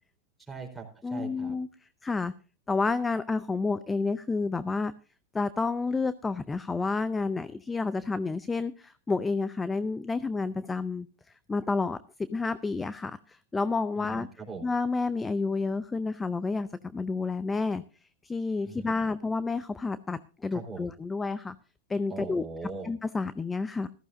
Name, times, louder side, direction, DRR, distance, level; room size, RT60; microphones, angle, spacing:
voice 1, 0.5-1.6 14.0-14.7 18.6-19.0 20.5-20.9 22.1-22.9, right 4 dB, 5° right, -1 dB, 4.1 m, -41 dB
voice 2, 1.0-1.7 2.0-2.3 2.7-4.9 5.3-11.1 11.5-12.0 12.3-14.3 14.6-17.8 18.2-21.6 21.9-22.4 22.8-23.9, left 4 dB, 15° left, 15 dB, 0.5 m, -30 dB
14.5 x 14.0 x 2.6 m, 0.35 s
hypercardioid pair, 110°, 0 cm